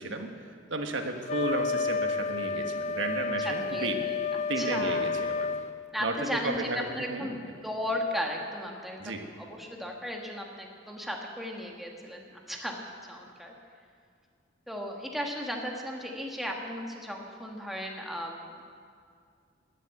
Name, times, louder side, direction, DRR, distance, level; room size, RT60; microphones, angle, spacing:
voice 1, 0.0-4.1 4.5-5.5 6.0-7.4 9.0-9.3, right 2 dB, 70° right, 4 dB, 1.5 m, -33 dB
Wind instrument woodwind instrument, 1.3-5.7, left 4 dB, 35° left, 0.3 m, -30 dB
voice 2, 3.6-5.0 5.9-6.7 6.9-7.4 7.6-12.8 13.1-13.5 14.7-18.6, equal, ahead, 0 dB, 1.6 m, -36 dB
11.5 x 11.0 x 9.3 m, 2.2 s
head